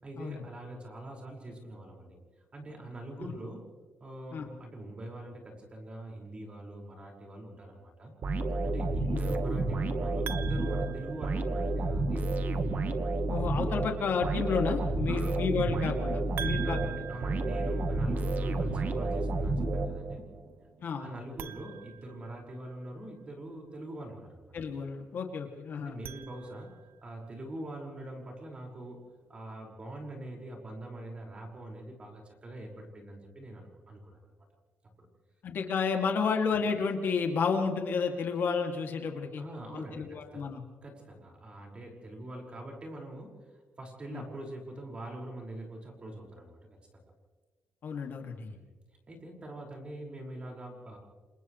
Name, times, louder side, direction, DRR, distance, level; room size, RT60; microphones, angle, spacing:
voice 1, 0.0-2.2 2.5-3.7 4.0-8.1 8.6-12.3 15.1-15.4 16.4-20.3 20.9-24.4 25.8-26.7 27.0-29.0 29.3-34.2 35.0-35.1 39.4-40.5 40.8-46.8 48.5-48.7 49.1-51.0, right 1 dB, 25° right, 0 dB, 5.4 m, -43 dB
sound 1, 8.2-20.4, right 2 dB, 45° right, 1.4 m, -30 dB
sound 2, 10.2-11.9 16.4-18.4 21.3-22.9 25.8-27.0, right 10 dB, 65° right, 0.8 m, -44 dB
voice 2, 13.3-17.0 20.8-21.1 24.5-26.0 35.4-39.4 39.7-40.6 44.1-44.2 47.8-48.5, left 5 dB, 55° left, 3 dB, 2.5 m, -31 dB
29.0 x 27.5 x 3.3 m, 1.4 s
cardioid pair, 160°, 4 cm